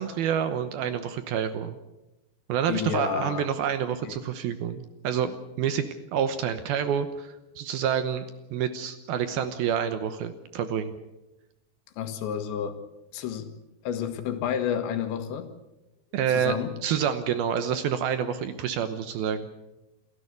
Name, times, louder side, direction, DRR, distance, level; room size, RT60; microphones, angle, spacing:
voice 1, 0.0-1.8 2.5-8.3 8.5-10.9 16.1-16.6 16.8-19.5, right 8 dB, 70° right, 10 dB, 2.5 m, -28 dB
voice 2, 2.7-3.5 4.0-4.2 12.0-12.8 13.1-13.5 13.8-15.5 16.3-16.7, left 8 dB, 80° left, 8 dB, 3.9 m, -30 dB
28.0 x 14.0 x 8.2 m, 0.96 s
omnidirectional pair, 5.1 m